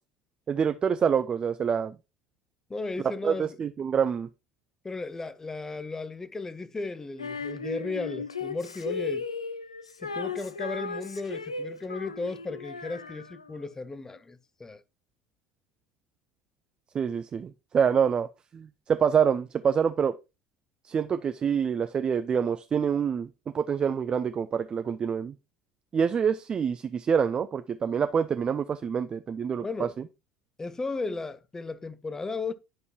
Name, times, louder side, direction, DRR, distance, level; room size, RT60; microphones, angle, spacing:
voice 1, 0.5-2.0 3.2-4.3 16.9-18.3 18.5-20.1 20.8-23.3 23.5-25.3 25.9-29.9, right 7 dB, 30° right, 0.5 m, -26 dB
voice 2, 2.7-3.5 4.8-9.2 10.0-14.8 29.6-29.9 30.6-32.5, left 3 dB, 15° left, 0.7 m, -35 dB
Female singing, 7.2-13.7, left 4 dB, 85° left, 0.4 m, -36 dB
10.5 x 5.4 x 2.8 m
figure-of-eight pair, 65°, 3 cm